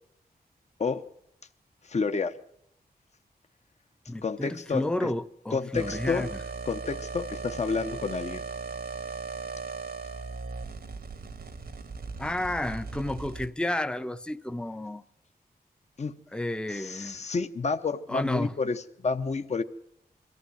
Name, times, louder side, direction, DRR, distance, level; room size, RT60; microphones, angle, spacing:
voice 1, 1.8-2.3 4.2-5.1 5.5-6.3 6.7-8.4 16.0-16.1 16.7-19.6, left 4 dB, 45° left, 0.9 m, -30 dB
voice 2, 4.1-6.4 12.2-15.0 16.3-17.2 18.1-18.5, left 1 dB, 5° left, 0.7 m, -31 dB
sound 1, 5.7-13.5, right 5 dB, 75° right, 1.6 m, -38 dB
23.5 x 14.5 x 7.9 m
wide cardioid pair, 125°, 16 cm